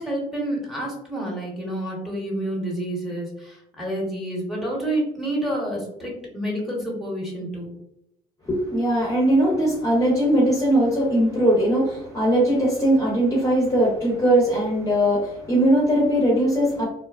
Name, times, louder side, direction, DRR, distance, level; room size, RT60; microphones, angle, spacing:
voice 1, 0.0-7.7, right 1 dB, ahead, -3 dB, 1.0 m, -29 dB
voice 2, 8.4-16.9, right 1 dB, 20° left, -4 dB, 0.8 m, -20 dB
2.8 x 2.2 x 2.3 m, 0.78 s
cardioid pair, 110°, 17 cm